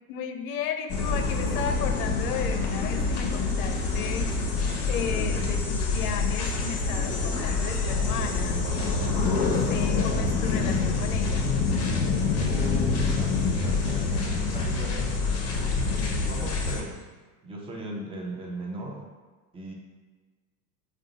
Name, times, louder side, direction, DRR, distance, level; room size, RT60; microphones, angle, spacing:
voice 1, 0.1-4.4 4.9-11.5, left 7 dB, 70° left, 7 dB, 0.5 m, -34 dB
sound 1, 0.9-16.8, left 4 dB, 35° left, 0.7 m, -26 dB
voice 2, 12.4-15.1 16.2-17.0 17.4-19.0 19.5-19.7, right 1 dB, 15° right, 0 dB, 0.4 m, -37 dB
3.6 x 2.3 x 3.9 m, 1.3 s
hypercardioid pair, 95°, 46 cm